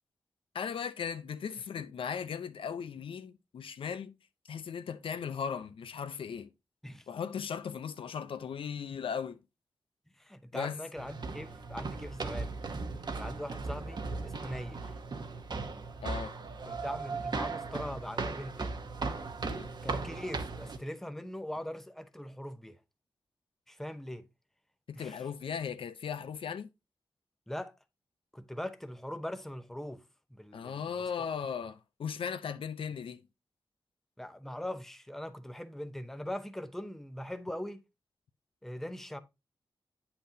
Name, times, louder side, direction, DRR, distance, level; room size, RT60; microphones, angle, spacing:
voice 1, 0.5-4.2 4.5-6.5 7.1-9.4 10.5-10.8 16.0-16.3 19.4-19.7 24.9-26.7 30.5-33.2, left 7 dB, 85° left, 0.6 m, -37 dB
voice 2, 10.2-12.6 13.2-14.9 16.6-18.8 19.8-22.8 23.7-24.3 24.9-25.3 27.5-27.8 28.3-30.0 30.3-31.3 34.2-37.8 38.6-39.2, left 1 dB, 5° left, 0.7 m, -41 dB
sound 1, 11.0-20.8, right 4 dB, 55° right, 1.0 m, -37 dB
8.6 x 5.8 x 2.7 m
wide cardioid pair, 95°, 9 cm